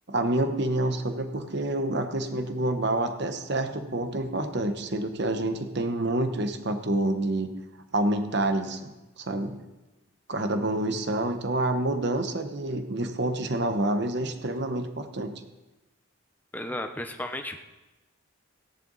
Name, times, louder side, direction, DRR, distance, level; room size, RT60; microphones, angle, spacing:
voice 1, 0.1-7.5 7.9-9.6 10.3-15.3, right 1 dB, 50° right, 7 dB, 1.1 m, -28 dB
voice 2, 16.5-17.6, left 1 dB, 10° left, 6 dB, 0.7 m, -34 dB
16.0 x 11.0 x 4.1 m, 1.1 s
head